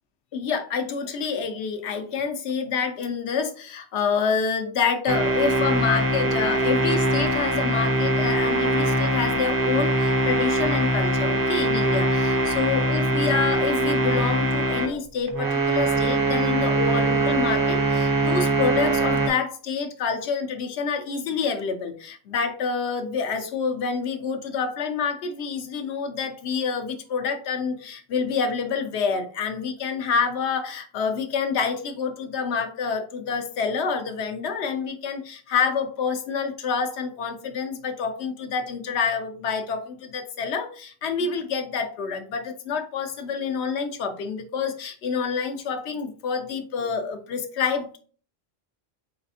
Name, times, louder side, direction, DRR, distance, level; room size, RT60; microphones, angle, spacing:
voice 1, 0.3-48.0, left 5 dB, 85° left, 5 dB, 0.9 m, -27 dB
sound 1, 5.1-14.9 15.3-19.3, right 2 dB, 30° right, 0.5 m, -22 dB
4.0 x 3.4 x 2.7 m, 0.43 s
omnidirectional pair, 1.1 m